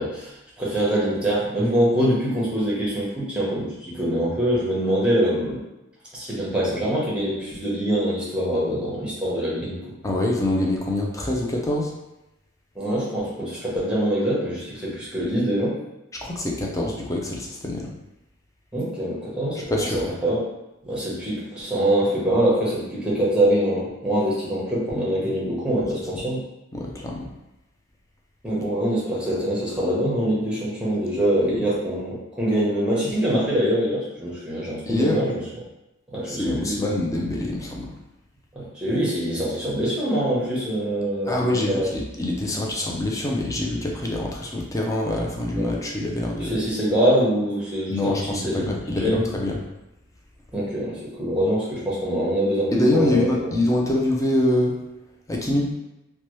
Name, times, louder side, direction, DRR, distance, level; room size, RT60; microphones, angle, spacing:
voice 1, 0.0-5.6 6.1-9.8 12.7-15.8 18.7-20.4 20.8-26.4 28.4-35.4 36.1-36.9 38.5-41.9 45.5-45.7 46.4-49.2 50.5-53.5, right 1 dB, 5° right, -6 dB, 0.8 m, -24 dB
voice 2, 10.0-11.9 16.2-17.9 19.7-20.1 25.8-25.9 26.1-26.2 26.7-27.3 34.8-35.2 36.3-37.9 41.3-46.6 47.9-49.6 52.7-54.7 55.3-55.7, left 1 dB, 15° left, -1 dB, 0.4 m, -25 dB
2.9 x 2.2 x 3.0 m, 0.94 s
head